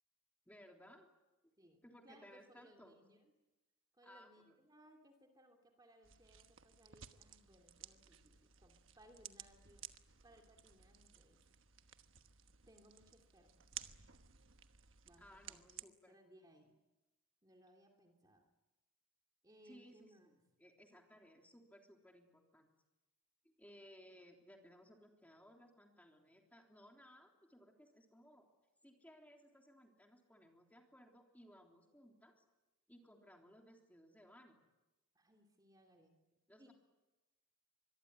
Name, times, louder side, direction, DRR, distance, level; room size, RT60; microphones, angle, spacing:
voice 1, 0.5-1.1 1.4-1.5 1.8-3.0 4.0-4.5 15.2-16.1 19.6-22.7 23.4-28.5 28.8-32.4 32.9-34.6 36.5-36.7, equal, 5° left, 2 dB, 3.4 m, -62 dB
voice 2, 1.6-3.3 3.9-9.8 10.2-11.4 12.7-13.8 15.0-16.7 17.4-18.4 19.4-20.3 35.1-36.7, equal, 20° right, 2 dB, 2.8 m, -66 dB
sound 1, 6.0-15.8, right 10 dB, 65° right, 1.2 m, -56 dB
25.0 x 22.5 x 9.8 m, 1.1 s
head